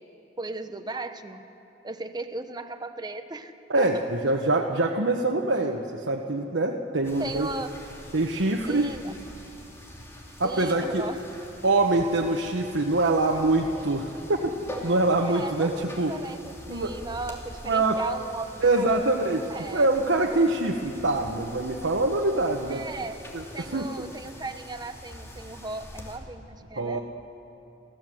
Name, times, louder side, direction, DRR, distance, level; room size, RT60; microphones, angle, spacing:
voice 1, 0.4-1.4 1.8-4.0 7.2-7.8 8.7-9.1 10.4-11.2 15.2-19.9 20.3-20.5 22.7-23.2 23.5-27.0, right 2 dB, 20° right, 8 dB, 1.0 m, -37 dB
voice 2, 3.7-7.5 8.1-8.9 10.4-11.1 11.6-14.6 14.8-16.1 16.7-17.0 17.7-18.0 18.6-19.4 19.7-22.9 23.3-23.9 26.8-27.0, right 2 dB, 85° right, 0 dB, 1.2 m, -24 dB
sound 1, 7.0-26.2, equal, 15° left, 2.8 m, -44 dB
30.0 x 14.0 x 7.7 m, 2.9 s
head